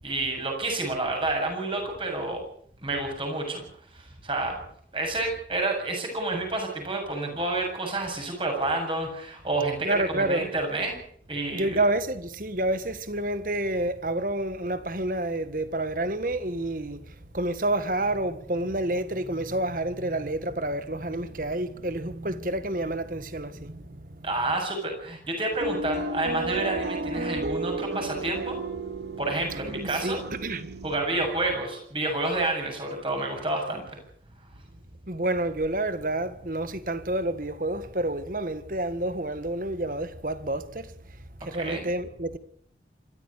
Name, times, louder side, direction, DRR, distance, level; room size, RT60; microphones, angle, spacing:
voice 1, 0.0-2.4 2.8-3.6 3.9-4.6 4.9-10.9 11.3-11.8 24.2-28.6 29.2-30.2 30.8-34.0 41.5-41.8, right 2 dB, 30° right, 7.5 m, -29 dB
voice 2, 9.8-10.5 11.5-24.3 29.7-30.7 35.1-40.9 41.4-42.4, right 1 dB, 50° right, 1.6 m, -29 dB
sound 1, 25.6-31.0, right 2 dB, 75° right, 2.2 m, -33 dB
26.0 x 14.0 x 8.5 m
head